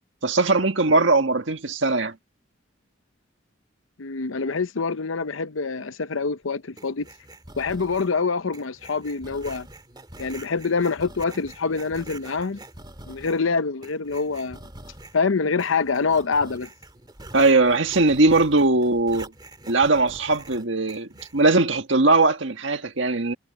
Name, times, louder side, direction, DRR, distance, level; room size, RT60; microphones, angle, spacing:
voice 1, 0.2-2.1 17.3-19.3 19.7-23.3, right 3 dB, 70° right, 1.6 m, -20 dB
voice 2, 4.0-7.1 7.6-9.7 10.2-12.6 13.1-14.6 15.1-16.7, left 4 dB, 85° left, 0.8 m, -25 dB
sound 1, 6.8-8.2 8.5-13.5 13.8-15.2 15.6-21.4, right 2 dB, 20° right, 2.5 m, -44 dB
head